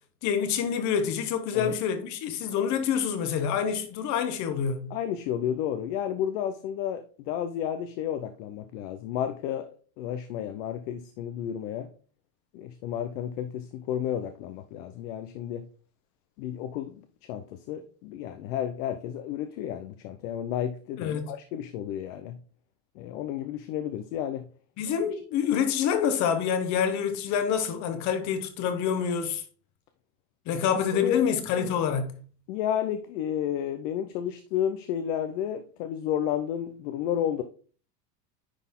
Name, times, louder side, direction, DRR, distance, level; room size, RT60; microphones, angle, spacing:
voice 1, 0.2-4.9 21.0-21.3 24.8-29.4 30.5-32.2, left 7 dB, 35° left, 1.1 m, -27 dB
voice 2, 4.9-11.9 12.5-15.7 16.4-17.0 17.3-22.4 23.0-24.5 30.9-31.3 32.5-37.4, left 10 dB, 55° left, 0.6 m, -32 dB
10.0 x 4.0 x 3.6 m
supercardioid pair, 165°, 47 cm